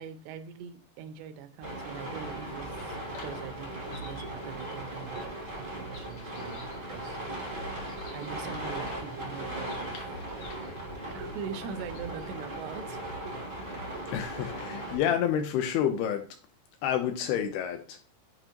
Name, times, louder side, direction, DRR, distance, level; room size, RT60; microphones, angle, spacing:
voice 1, 0.0-7.7 8.1-10.0 11.1-13.0, right 7 dB, 90° right, 2.8 m, -42 dB
sound 1, 1.6-15.0, right 1 dB, 45° right, 0.6 m, -38 dB
sound 2, 2.2-12.4, left 2 dB, 60° left, 1.9 m, -51 dB
voice 2, 14.1-16.3 16.8-18.0, left 9 dB, 80° left, 2.4 m, -29 dB
7.9 x 4.8 x 2.9 m
omnidirectional pair, 4.7 m